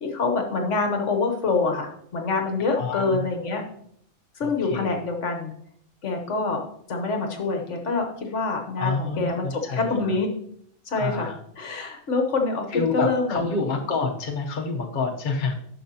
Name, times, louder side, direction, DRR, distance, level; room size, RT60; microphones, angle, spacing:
voice 1, 0.0-3.6 4.4-5.5 6.0-6.6 6.9-10.3 10.9-13.4, left 3 dB, 55° left, 3 dB, 1.4 m, -26 dB
voice 2, 2.6-3.4 4.4-5.0 8.8-10.2 10.9-11.4 12.7-15.6, left 4 dB, 40° left, 1 dB, 0.9 m, -28 dB
10.0 x 6.4 x 2.8 m, 0.67 s
omnidirectional pair, 1.5 m